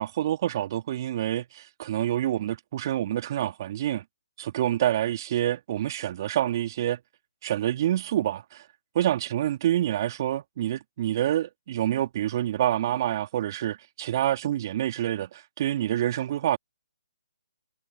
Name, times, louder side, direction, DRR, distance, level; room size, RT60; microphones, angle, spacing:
voice 1, 0.0-4.0 4.4-7.0 7.4-8.6 8.9-16.6, right 12 dB, 40° right, 2.2 m, -27 dB
figure-of-eight pair, 135°, 3 cm